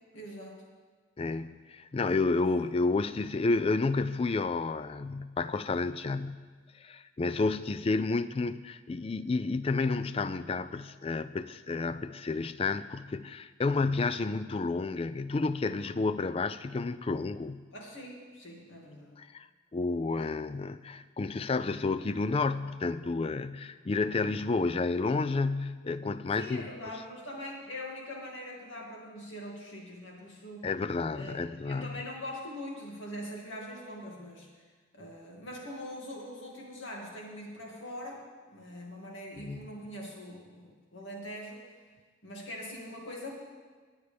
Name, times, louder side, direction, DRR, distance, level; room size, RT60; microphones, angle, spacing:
voice 1, 0.1-0.6 2.3-2.5 17.7-19.1 26.3-30.7 31.1-31.4 31.6-34.7 34.9-41.6 42.2-43.3, left 1 dB, 70° left, -2 dB, 2.4 m, -42 dB
voice 2, 1.2-6.4 6.8-17.6 19.2-19.5 19.7-26.7 30.6-31.9 39.4-39.6, left 3 dB, 30° left, 13 dB, 0.3 m, -30 dB
21.0 x 8.1 x 3.4 m, 1.5 s
head